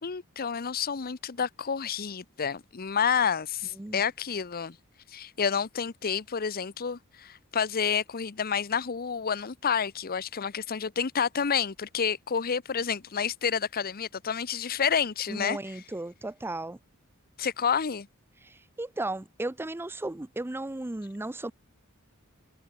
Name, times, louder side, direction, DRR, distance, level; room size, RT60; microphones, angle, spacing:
voice 1, 0.0-4.8 5.1-15.8 17.4-18.1, left 7 dB, 45° left, 0.7 m, -29 dB
voice 2, 15.3-16.8 18.4-21.5, right 2 dB, 10° right, 0.5 m, -35 dB
head